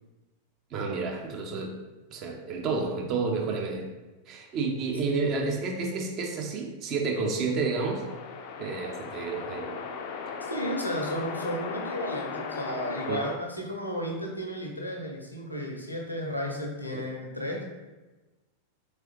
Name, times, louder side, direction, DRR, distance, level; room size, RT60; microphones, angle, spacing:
voice 1, 0.7-1.7 2.1-3.8 4.3-8.0 8.6-9.8 13.0-13.2 16.9-17.0, right 4 dB, 35° right, 1 dB, 0.7 m, -30 dB
sound 1, 7.6-13.4, left 5 dB, 45° left, 0.4 m, -37 dB
voice 2, 10.5-17.6, equal, 90° left, 0 dB, 0.7 m, -33 dB
3.8 x 3.2 x 3.0 m, 1.2 s
figure-of-eight pair, 90°, 0 cm